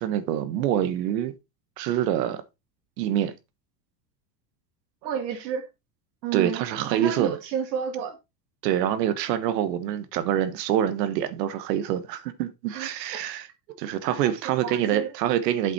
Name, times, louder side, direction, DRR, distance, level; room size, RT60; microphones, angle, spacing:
voice 1, 0.0-1.3 1.8-2.4 3.0-3.3 6.3-7.4 8.6-13.5 13.8-15.7, right 11 dB, 75° right, 1.3 m, -26 dB
voice 2, 5.0-5.7 6.2-6.6 6.9-8.2 12.7-13.2 13.9-15.1, right 8 dB, 90° right, 1.8 m, -31 dB
8.1 x 5.9 x 4.3 m
supercardioid pair, 165°, 50 cm